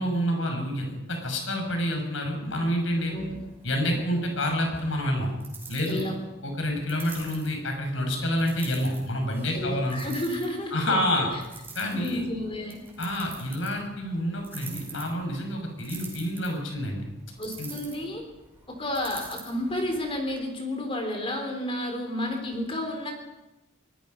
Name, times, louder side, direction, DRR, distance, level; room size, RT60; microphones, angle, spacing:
voice 1, 0.0-3.1 3.6-5.3 5.7-6.0 6.4-10.0 10.7-11.3 11.7-12.2 13.0-17.0 17.6-17.7, equal, 70° left, 3 dB, 6.2 m, -28 dB
sound 1, 2.9-20.4, right 4 dB, 10° right, 5.6 m, -47 dB
voice 2, 5.9-6.2 9.5-11.0 11.9-12.8 17.4-18.2 18.7-23.1, left 1 dB, 25° left, 3 dB, 3.8 m, -31 dB
24.0 x 20.0 x 5.4 m, 1.0 s
head